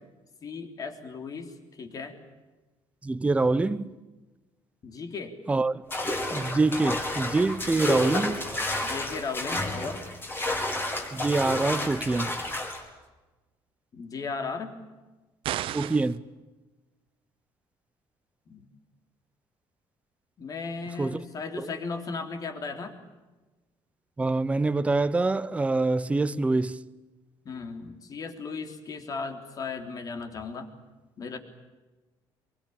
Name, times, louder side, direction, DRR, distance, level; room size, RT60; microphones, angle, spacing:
voice 1, 0.4-2.2 4.8-5.4 7.7-8.0 8.8-10.0 13.9-14.8 18.5-18.7 20.4-23.0 27.5-30.7 31.2-31.4, left 4 dB, 40° left, 3.6 m, -36 dB
voice 2, 3.0-3.9 5.5-5.8 6.3-8.6 11.1-12.4 15.7-16.2 21.0-21.3 21.6-21.8 24.2-26.8, right 3 dB, 15° right, 0.8 m, -25 dB
sound 1, 5.9-12.8, left 1 dB, 25° left, 4.6 m, -31 dB
sound 2, 15.4-16.2, right 13 dB, 70° right, 1.1 m, -32 dB
24.5 x 24.0 x 8.9 m
cardioid pair, 130°, 10 cm